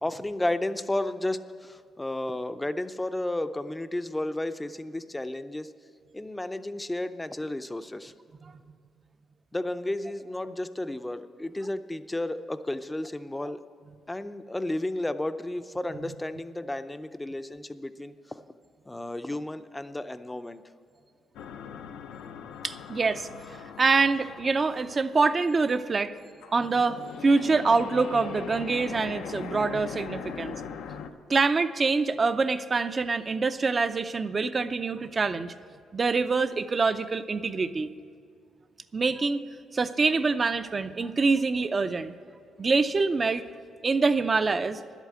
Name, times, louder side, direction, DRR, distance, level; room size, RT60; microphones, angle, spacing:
voice 1, 0.0-5.7 6.1-8.1 9.5-13.6 14.1-18.4 18.9-20.6, left 1 dB, 10° left, 11 dB, 0.5 m, -32 dB
sound 1, 21.3-26.1 26.4-31.1, left 7 dB, 85° left, 0.6 m, -40 dB
voice 2, 22.6-23.3 23.8-26.1 26.5-30.6 31.3-35.5 35.9-37.9 38.9-39.4 39.7-42.1 42.6-43.4 43.8-44.8, right 4 dB, 35° right, 10 dB, 0.5 m, -25 dB
11.0 x 8.2 x 7.6 m, 2.2 s
cardioid pair, 90°, 0 cm